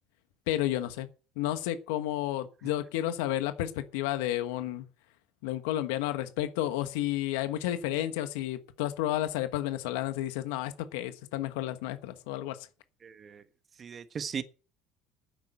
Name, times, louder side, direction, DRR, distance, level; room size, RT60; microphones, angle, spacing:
voice 1, 0.5-1.1 1.4-4.8 5.4-12.6, left 13 dB, 90° left, 1.2 m, -31 dB
voice 2, 13.0-13.4 13.8-14.4, right 6 dB, 35° right, 1.3 m, -37 dB
9.7 x 8.2 x 7.7 m
supercardioid pair, 115°, 0 cm